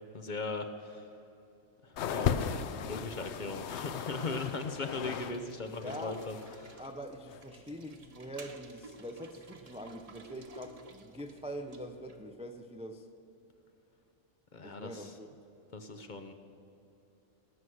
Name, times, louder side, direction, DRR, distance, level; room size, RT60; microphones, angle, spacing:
voice 1, 0.1-1.0 1.8-2.6 2.9-6.4 6.6-6.8 14.5-15.1 15.7-16.3, left 3 dB, 45° left, 7 dB, 0.8 m, -38 dB
sound 1, 2.0-5.4 5.6-6.5 7.3-7.4, left 8 dB, 65° left, 0.8 m, -36 dB
sound 2, 3.1-12.3, right 3 dB, 35° right, 0.7 m, -54 dB
voice 2, 5.6-6.2 6.8-13.1 14.6-15.3, equal, 10° right, 6 dB, 0.4 m, -44 dB
18.5 x 6.2 x 7.9 m, 2.8 s
omnidirectional pair, 1.3 m